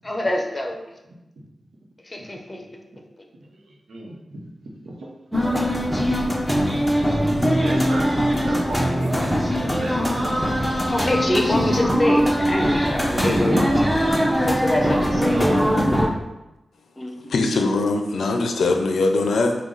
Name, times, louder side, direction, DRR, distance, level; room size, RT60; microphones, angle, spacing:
voice 1, 0.0-0.8 2.1-2.8 10.9-13.6 14.5-15.5 17.0-17.2, left 1 dB, 30° left, 3 dB, 0.7 m, -25 dB
voice 2, 3.4-4.4 4.8-5.1 6.4-6.5 7.6-10.0 13.2-14.3 14.8-15.7, right 2 dB, 80° right, -2 dB, 0.9 m, -35 dB
sound 1, 5.3-16.1, equal, 5° left, 0.9 m, -21 dB
voice 3, 17.3-19.6, left 3 dB, 85° left, 4 dB, 0.5 m, -21 dB
4.7 x 2.3 x 3.9 m, 0.96 s
cardioid pair, 50°, 0 cm